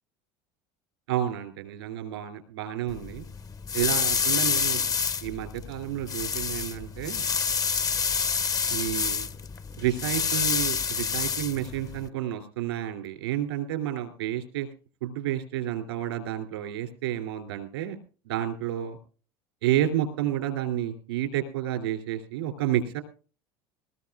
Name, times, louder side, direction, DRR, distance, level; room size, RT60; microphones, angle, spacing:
voice 1, 1.1-3.2 3.7-4.8 5.2-7.2 8.7-9.3 9.8-14.7 15.0-18.0 18.2-19.0 19.6-23.0, right 11 dB, 90° right, 6 dB, 2.8 m, -30 dB
sound 1, 2.9-12.1, left 6 dB, 30° left, 0.6 m, -28 dB
20.0 x 20.0 x 2.4 m, 0.38 s
hypercardioid pair, 85°, 13 cm